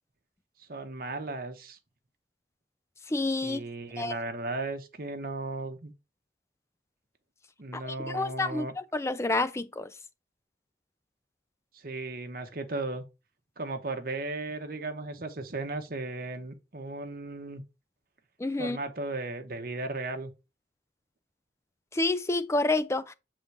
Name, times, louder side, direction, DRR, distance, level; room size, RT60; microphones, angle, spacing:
voice 1, 0.6-1.8 3.4-5.9 7.6-8.7 11.7-13.0 13.6-17.6 18.6-20.3, right 2 dB, 50° right, 1.0 m, -36 dB
voice 2, 3.1-3.6 4.0-4.1 7.7-9.9 18.4-18.8 21.9-23.1, left 2 dB, 15° left, 0.4 m, -29 dB
6.8 x 3.7 x 4.6 m
head